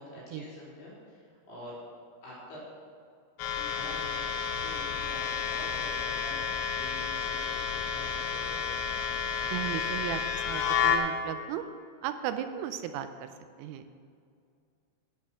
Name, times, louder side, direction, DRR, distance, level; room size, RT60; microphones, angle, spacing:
voice 1, 0.0-1.7 2.2-2.6 3.5-9.0, left 1 dB, 55° left, -6 dB, 5.3 m, -47 dB
sound 1, 3.4-11.0, left 6 dB, 90° left, 3.7 m, -31 dB
voice 2, 9.5-10.2 10.5-11.6 12.0-13.3 13.6-13.9, right 11 dB, 85° right, 9 dB, 3.1 m, -35 dB
11.0 x 10.5 x 5.8 m, 2.3 s
omnidirectional pair, 5.9 m